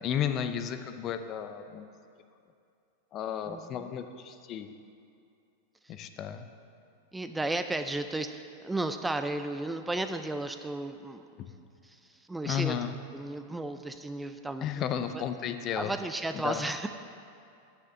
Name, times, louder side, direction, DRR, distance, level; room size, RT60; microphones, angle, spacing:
voice 1, 0.0-1.9 3.1-4.7 5.9-6.5 11.4-11.5 12.4-13.0 14.6-15.9 16.3-16.6, left 9 dB, 40° left, 8 dB, 0.6 m, -33 dB
voice 2, 3.5-3.9 7.1-11.2 11.9-12.7 13.1-14.8 15.1-15.2 15.8-16.9, right 2 dB, 10° right, 8 dB, 0.4 m, -34 dB
7.3 x 6.7 x 7.2 m, 2.5 s
hypercardioid pair, 100°, 0 cm